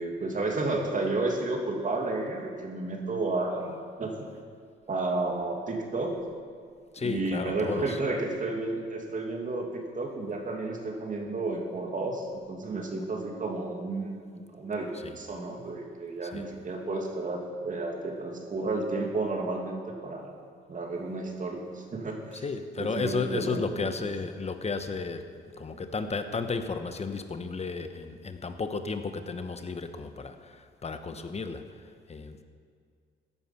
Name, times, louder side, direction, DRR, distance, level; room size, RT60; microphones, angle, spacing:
voice 1, 0.0-3.7 4.0-4.3 4.9-6.2 7.0-14.9 15.2-20.3 20.7-22.4 22.8-24.0, right 2 dB, 40° right, 1 dB, 2.5 m, -32 dB
voice 2, 6.9-8.0 14.9-15.2 16.2-16.4 22.3-32.4, left 4 dB, 30° left, 8 dB, 1.1 m, -33 dB
15.5 x 10.0 x 5.9 m, 2.1 s
cardioid pair, 90°, 20 cm